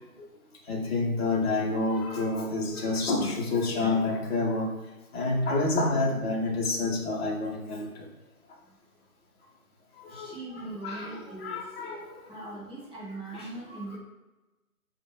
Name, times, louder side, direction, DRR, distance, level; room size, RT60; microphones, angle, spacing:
voice 1, 0.7-4.7 5.1-8.0 10.0-10.3 10.8-12.2, left 2 dB, 45° left, -3 dB, 0.6 m, -28 dB
voice 2, 10.1-11.6 12.3-14.0, right 2 dB, ahead, -15 dB, 0.5 m, -40 dB
3.6 x 2.1 x 3.6 m, 1.1 s
hypercardioid pair, 175°, 44 cm